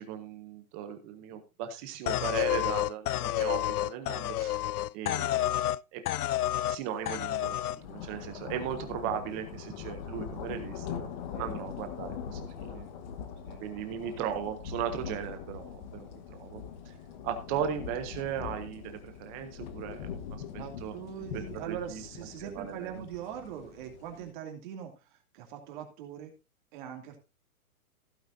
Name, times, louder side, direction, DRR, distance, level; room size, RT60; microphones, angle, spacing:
voice 1, 0.0-4.6 4.9-5.5 5.9-6.0 6.7-11.1 11.4-12.9 13.6-16.6 17.2-20.2 20.5-21.0 21.3-22.0 22.4-23.0, right 9 dB, 10° right, 7 dB, 0.6 m, -37 dB
sound 1, 2.1-5.8 6.1-6.8 7.1-7.8, left 13 dB, 80° left, 0.5 m, -29 dB
sound 2, 7.0-24.3, left 7 dB, 30° left, 1.2 m, -42 dB
voice 2, 20.6-26.3 26.7-27.2, right 9 dB, 35° right, 3 dB, 2.6 m, -42 dB
15.5 x 8.8 x 2.7 m, 0.28 s
hypercardioid pair, 160°, 44 cm